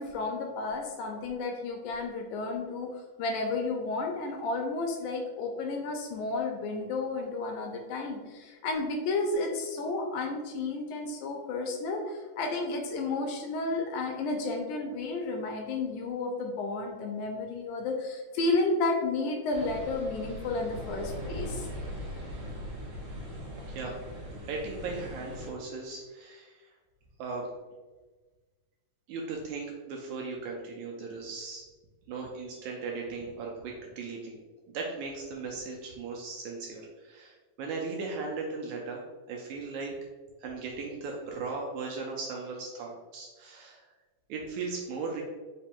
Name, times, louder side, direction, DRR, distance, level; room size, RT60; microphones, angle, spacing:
voice 1, 0.0-21.7, left 3 dB, 80° left, 2 dB, 1.9 m, -32 dB
sound 1, 19.5-25.5, equal, 55° right, 1.7 m, -40 dB
voice 2, 23.6-24.0 24.4-26.7 27.2-27.5 29.1-31.6 32.1-34.4 34.7-39.0 39.3-39.9 40.4-43.9 44.3-45.2, right 4 dB, 80° right, 0 dB, 1.7 m, -37 dB
5.0 x 2.2 x 4.2 m, 1.3 s
omnidirectional pair, 3.8 m